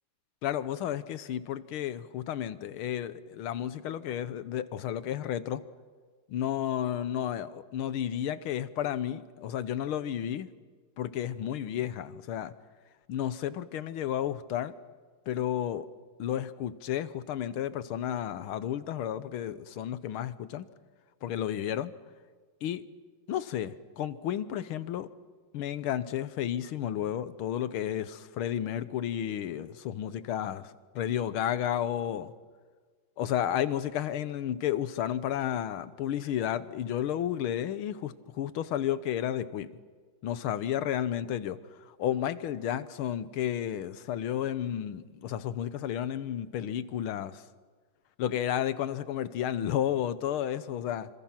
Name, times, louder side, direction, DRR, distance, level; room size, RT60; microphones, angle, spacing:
voice 1, 0.4-5.6 6.3-10.5 11.0-12.5 13.1-14.8 15.3-15.9 16.2-20.7 21.2-21.9 22.6-22.8 23.3-25.1 25.5-32.3 33.2-39.8 40.2-41.6 42.0-47.4 48.2-51.1, left 10 dB, 80° left, 14 dB, 1.8 m, -32 dB
26.5 x 26.5 x 5.9 m, 1.5 s
omnidirectional pair, 2.3 m